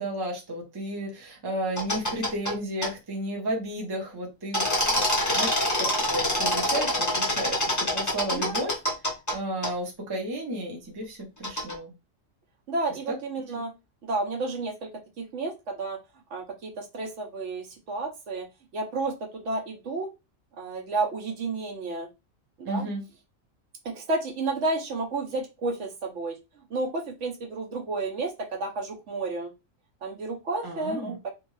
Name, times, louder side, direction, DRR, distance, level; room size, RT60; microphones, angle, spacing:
voice 1, 0.0-4.6 4.9-5.0 5.3-7.6 7.9-8.7 9.3-11.9 13.1-13.2 22.6-23.0 30.6-31.2, right 1 dB, 25° right, 0 dB, 0.6 m, -33 dB
sound 1, 1.8-2.5 2.8-2.9 4.5-9.3 9.6-9.7 11.4-11.7, left 1 dB, 20° left, 0.6 m, -26 dB
voice 2, 12.7-13.7 14.1-14.9 15.2-16.0 16.3-18.5 18.7-19.1 19.4-20.1 20.6-22.1 22.6-22.9 23.8-26.3 26.7-29.5 30.0-31.3, right 3 dB, 65° right, 1 dB, 1.0 m, -31 dB
2.5 x 2.3 x 3.1 m, 0.25 s
omnidirectional pair, 1.4 m